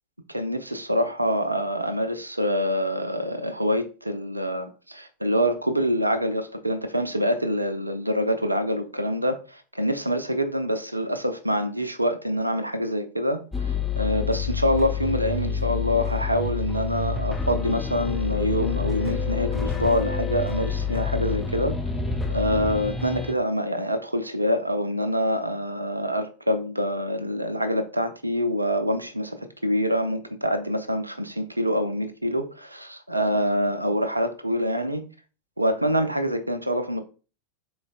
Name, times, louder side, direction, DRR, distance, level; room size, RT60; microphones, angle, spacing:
voice 1, 0.3-21.8 22.3-35.0 35.6-37.0, equal, 85° right, 0.4 m, -26 dB
sound 1, 13.5-23.3, left 5 dB, 5° left, 0.7 m, -28 dB
4.0 x 3.8 x 2.3 m
figure-of-eight pair, 90°, 0 cm